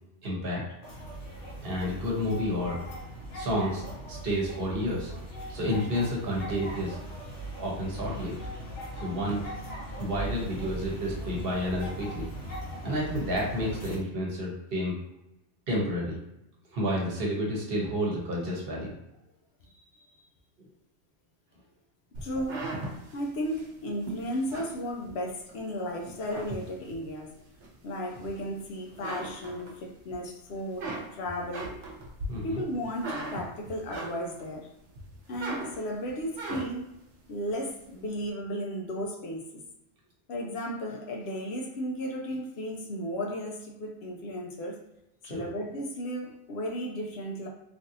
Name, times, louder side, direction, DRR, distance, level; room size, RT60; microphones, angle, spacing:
voice 1, 0.2-0.6 1.6-2.8 3.3-5.1 5.5-7.0 7.6-8.3 8.9-9.4 10.0-12.3 12.8-15.0 15.7-16.2 16.7-18.9 32.3-32.6 45.2-45.4, equal, 55° right, -3 dB, 1.0 m, -30 dB
sound 1, 0.8-13.9, equal, 85° left, 1.3 m, -39 dB
sound 2, 22.1-25.6 26.0-27.1 27.6-28.6 28.9-30.2 30.5-34.5 34.9-36.9, right 2 dB, 80° right, 1.0 m, -39 dB
voice 2, 22.2-22.7 23.1-27.3 27.8-31.7 32.4-34.7 35.3-36.9 37.3-39.6 40.3-44.8 45.3-47.5, equal, 70° left, 0 dB, 0.8 m, -34 dB
3.2 x 2.6 x 2.6 m, 0.85 s
omnidirectional pair, 1.2 m